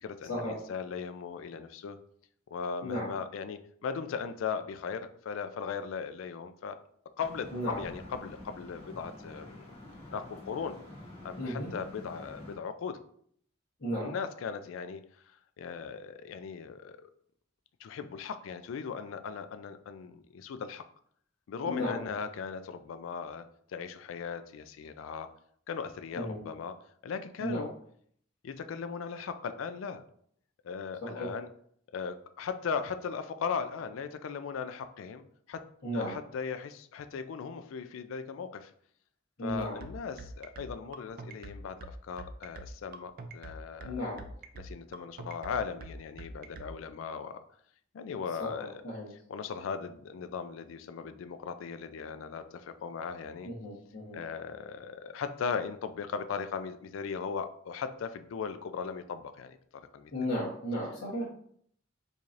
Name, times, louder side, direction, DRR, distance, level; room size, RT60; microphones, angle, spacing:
voice 1, 0.0-2.0 2.5-6.8 7.2-9.7 10.1-10.8 11.2-13.0 14.0-17.1 17.8-20.8 21.5-25.3 25.7-26.8 27.0-27.7 28.4-30.0 30.6-31.5 31.9-35.6 35.9-38.7 39.4-44.0 44.6-47.4 47.9-48.8 49.3-53.5 54.1-59.6 59.9-60.1, left 6 dB, 85° left, 10 dB, 0.3 m, -38 dB
sound 1, 7.2-12.6, left 1 dB, 30° left, 1.2 m, -48 dB
voice 2, 7.5-7.8 11.4-11.7 13.8-14.1 21.6-22.0 26.2-26.4 27.4-27.7 31.0-31.3 35.8-36.1 39.4-39.8 43.8-44.2 48.4-49.1 53.4-54.2 60.1-61.3, equal, 60° left, -9 dB, 1.1 m, -34 dB
sound 2, 39.8-46.7, right 2 dB, 50° right, 0.4 m, -44 dB
4.6 x 2.7 x 2.5 m, 0.63 s
head